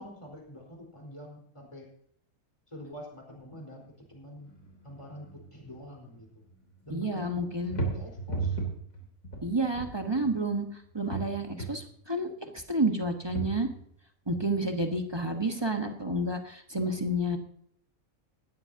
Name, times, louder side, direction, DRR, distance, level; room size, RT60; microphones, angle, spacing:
voice 1, 0.0-1.9 2.7-4.5 4.8-6.4 6.8-8.6, equal, 20° left, -1 dB, 4.6 m, -46 dB
sound 1, 4.4-5.8 6.1-6.9 7.3-10.5 10.8-11.9 12.8-13.9 14.3-14.4, right 3 dB, 80° left, 3.5 m, -36 dB
voice 2, 6.9-7.8 9.4-10.7 10.9-13.7 14.3-17.4, right 1 dB, 20° right, 4 dB, 1.2 m, -30 dB
19.0 x 13.0 x 2.8 m, 0.65 s
omnidirectional pair, 1.4 m